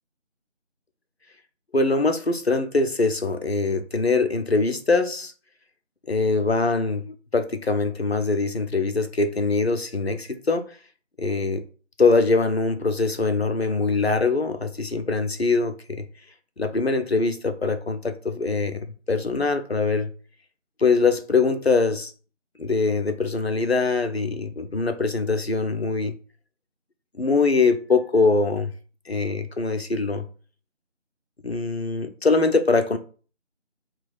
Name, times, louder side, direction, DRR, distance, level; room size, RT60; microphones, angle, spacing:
voice 1, 1.7-5.3 6.1-10.7 11.2-11.6 12.0-16.1 16.6-20.1 20.8-22.1 22.6-26.1 27.2-28.7 29.1-30.3 31.4-33.0, left 3 dB, 55° left, 0.6 m, -23 dB
3.5 x 2.4 x 4.4 m
figure-of-eight pair, 170°, 37 cm